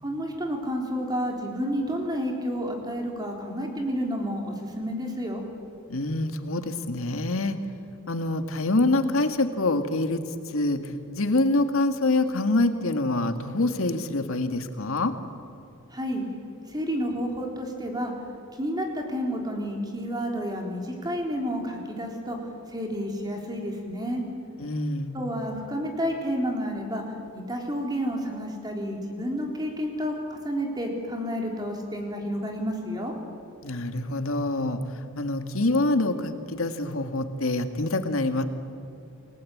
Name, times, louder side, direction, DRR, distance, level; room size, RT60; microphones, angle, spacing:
voice 1, 0.0-5.4 15.9-16.2 16.7-18.1 18.5-22.4 22.7-24.2 25.1-27.0 27.3-33.1, equal, 20° right, 1 dB, 3.9 m, -30 dB
voice 2, 5.9-7.6 8.1-10.8 11.1-15.1 24.6-25.2 33.6-34.8 35.2-38.4, left 2 dB, 75° left, 7 dB, 1.9 m, -25 dB
28.5 x 19.5 x 8.6 m, 2.6 s
head